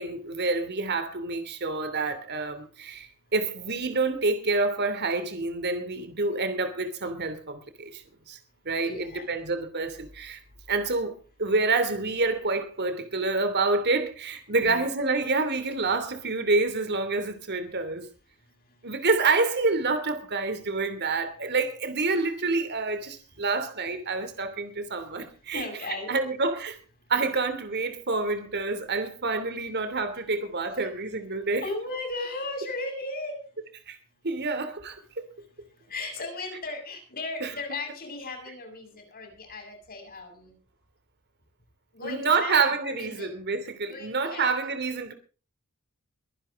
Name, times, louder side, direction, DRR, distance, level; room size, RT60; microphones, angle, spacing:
voice 1, 0.0-8.4 8.6-10.4 10.7-18.1 18.8-25.6 26.1-26.7 27.1-31.6 33.9-34.0 34.2-35.3 37.4-37.5 42.0-45.1, right 3 dB, 50° right, 2.9 m, -28 dB
voice 2, 8.8-9.3 14.5-14.9 18.7-18.8 25.5-26.3 30.8-30.9 31.6-33.4 35.9-40.6 41.9-43.4 43.9-44.7, left 2 dB, 45° left, 7.6 m, -36 dB
23.5 x 10.5 x 3.8 m
head